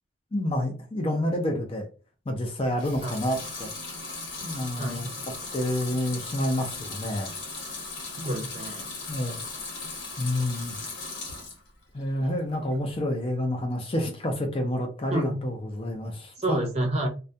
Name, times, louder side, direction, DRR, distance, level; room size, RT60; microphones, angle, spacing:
voice 1, 0.3-1.9 2.3-3.7 4.4-5.1 5.5-7.8 9.1-9.4 10.2-10.8 11.9-16.7, left 1 dB, 30° left, 3 dB, 0.5 m, -29 dB
Water tap faucet / Sink (filling or washing) / Liquid, 2.7-11.7 12.1-12.8, left 3 dB, 90° left, 1.1 m, -37 dB
voice 2, 4.8-5.1 8.2-8.9 15.1-15.4 16.4-17.1, right 1 dB, 35° right, 1 dB, 0.6 m, -29 dB
2.3 x 2.1 x 2.6 m, 0.35 s
head